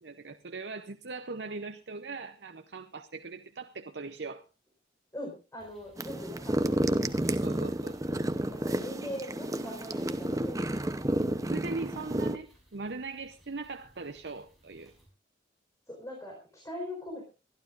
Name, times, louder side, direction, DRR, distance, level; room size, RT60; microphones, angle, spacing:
voice 1, 0.0-4.4 7.4-7.9 11.5-12.5 12.7-14.9, right 3 dB, 65° right, 9 dB, 0.8 m, -40 dB
voice 2, 5.1-7.0 8.1-10.7 15.9-17.2, left 1 dB, 15° left, -1 dB, 4.5 m, -41 dB
sound 1, 5.6-15.1, equal, ahead, 6.0 m, -62 dB
sound 2, 6.0-12.4, right 1 dB, 20° right, 0.8 m, -31 dB
24.5 x 12.0 x 2.5 m, 0.31 s
head